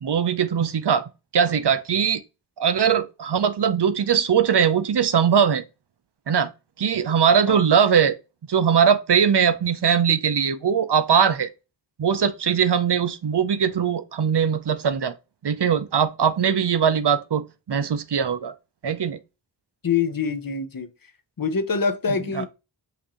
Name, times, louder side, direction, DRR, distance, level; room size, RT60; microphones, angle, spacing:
voice 1, 0.0-2.2 2.6-5.6 6.3-6.5 6.8-8.1 8.5-11.5 12.0-15.1 15.4-18.5 18.8-19.2 22.3-22.4, right 7 dB, 70° right, 0.6 m, -21 dB
voice 2, 19.8-20.9 21.4-22.5, left 5 dB, 50° left, 0.7 m, -25 dB
5.7 x 2.6 x 3.0 m
wide cardioid pair, 45°, 43 cm